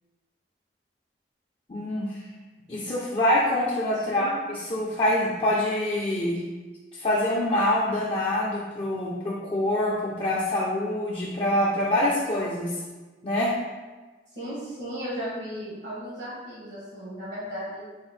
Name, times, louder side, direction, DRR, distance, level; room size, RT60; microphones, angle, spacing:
voice 1, 1.7-2.2 2.7-6.4 6.9-12.7 13.2-13.5, left 1 dB, 30° left, -5 dB, 0.4 m, -25 dB
voice 2, 4.1-4.4 14.3-17.8, equal, 80° right, -10 dB, 1.4 m, -35 dB
4.1 x 2.1 x 4.2 m, 1.3 s
head